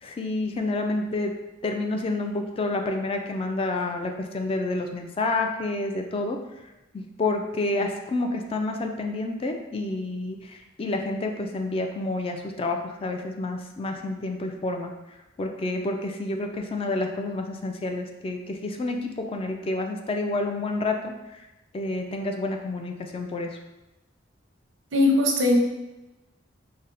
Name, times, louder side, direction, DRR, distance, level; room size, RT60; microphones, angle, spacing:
voice 1, 0.0-1.3 1.6-6.4 6.9-14.9 15.4-21.4 21.7-23.6, left 2 dB, 30° left, 4 dB, 0.3 m, -29 dB
voice 2, 24.9-25.6, left 2 dB, 80° right, 0 dB, 0.7 m, -19 dB
4.0 x 2.0 x 3.8 m, 1.0 s
head